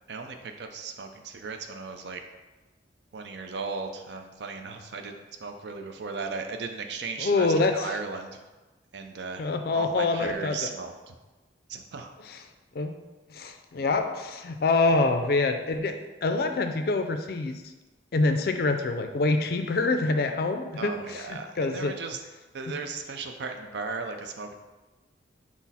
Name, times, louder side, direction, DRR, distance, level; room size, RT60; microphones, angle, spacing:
voice 1, 0.1-2.2 3.1-8.4 8.9-11.2 11.7-12.1 20.8-22.2 22.5-24.5, right 4 dB, 70° right, 5 dB, 0.5 m, -36 dB
voice 2, 7.2-7.9 9.4-10.6 12.7-13.0 13.3-17.6 18.1-21.9, left 3 dB, 55° left, 6 dB, 0.4 m, -26 dB
6.0 x 2.0 x 4.1 m, 1.2 s
head